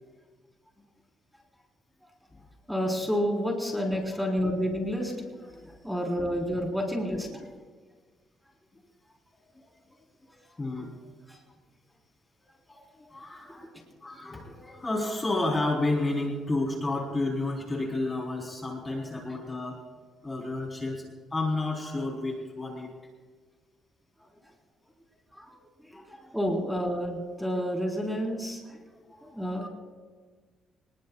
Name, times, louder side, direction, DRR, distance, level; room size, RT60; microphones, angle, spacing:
voice 1, 2.7-5.1 5.8-7.3 11.3-11.4 25.4-25.6 25.9-26.0 26.3-28.8 29.2-29.7, equal, ahead, -1 dB, 4.2 m, -29 dB
voice 2, 10.2-11.0 12.7-13.7 14.0-19.8 20.2-22.9 25.9-26.3 28.8-29.4, left 2 dB, 25° left, 0 dB, 3.9 m, -32 dB
26.0 x 20.5 x 2.4 m, 1.5 s
cardioid pair, 90°, 0 cm